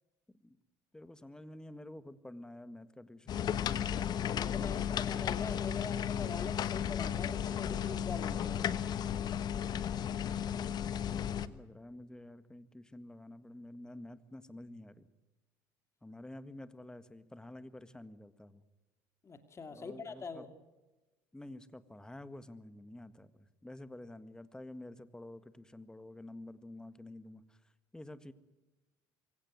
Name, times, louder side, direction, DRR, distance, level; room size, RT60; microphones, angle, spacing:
voice 1, 0.9-3.5 4.5-5.0 11.4-15.1 16.0-18.6 19.7-20.5 21.3-27.6 27.9-28.3, left 1 dB, 10° left, 12 dB, 1.7 m, -49 dB
sound 1, 3.3-11.5, left 9 dB, 50° left, 1.2 m, -34 dB
voice 2, 4.3-8.6 19.2-20.5, left 4 dB, 30° left, 8 dB, 2.4 m, -43 dB
24.0 x 17.0 x 9.5 m, 1.1 s
supercardioid pair, 85°, 9 cm